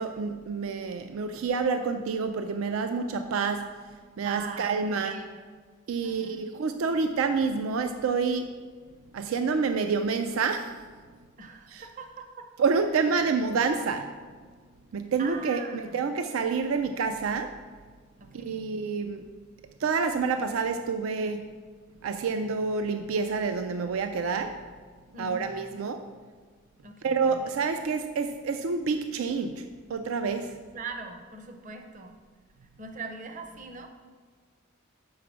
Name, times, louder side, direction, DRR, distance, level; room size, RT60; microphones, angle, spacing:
voice 1, 0.0-3.7 4.2-5.2 5.9-8.6 9.1-10.8 11.7-11.8 12.6-14.1 14.9-17.5 18.3-19.2 19.8-21.5 22.0-24.5 25.2-26.0 27.0-29.6 29.9-30.6, right 5 dB, 80° right, 7 dB, 0.4 m, -28 dB
voice 2, 4.2-5.4 6.0-6.4 11.4-12.5 15.2-16.1 18.2-18.7 25.1-25.8 26.8-27.5 30.7-32.2 32.8-33.9, right 4 dB, 40° right, 5 dB, 0.7 m, -42 dB
5.8 x 4.8 x 6.1 m, 1.5 s
head